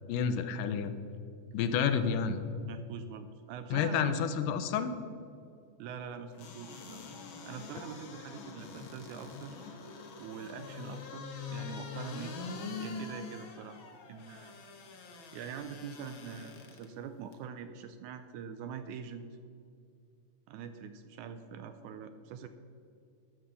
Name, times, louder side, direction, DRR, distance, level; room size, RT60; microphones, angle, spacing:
voice 1, 0.1-0.9 1.5-2.4 3.7-4.9, left 7 dB, 85° left, 10 dB, 2.3 m, -29 dB
voice 2, 2.7-4.1 5.8-7.0 7.5-9.7 10.2-12.4 12.8-14.5 15.3-19.3 20.5-22.5, right 7 dB, 80° right, 9 dB, 1.9 m, -44 dB
sound 1, 6.3-16.9 17.3-17.4, left 4 dB, 55° left, 1.4 m, -44 dB
13.0 x 6.2 x 6.9 m, 2.4 s
omnidirectional pair, 3.7 m